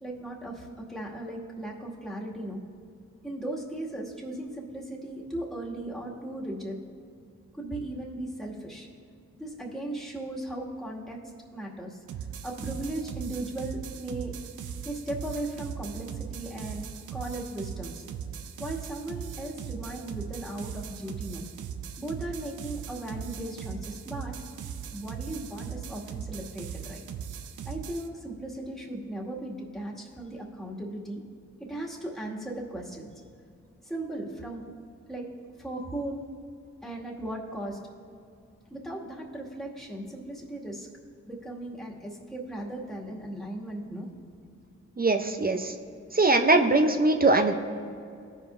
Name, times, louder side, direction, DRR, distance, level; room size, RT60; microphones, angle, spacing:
voice 1, 0.0-2.6 3.2-6.8 7.5-8.9 9.4-11.2 11.5-12.0 12.4-14.3 14.8-18.0 18.6-21.5 22.0-24.3 24.9-27.0 27.6-31.2 31.6-33.1 33.8-34.7 35.1-35.3 35.6-36.2 36.8-37.8 38.7-40.9 41.3-44.1, right 1 dB, ahead, -4 dB, 2.0 m, -37 dB
sound 1, 12.1-28.1, right 8 dB, 80° right, 0.5 m, -39 dB
voice 2, 45.0-45.7 46.1-47.5, right 2 dB, 30° right, 5 dB, 0.6 m, -21 dB
14.0 x 5.2 x 2.6 m, 2.4 s
supercardioid pair, 40°, 30 cm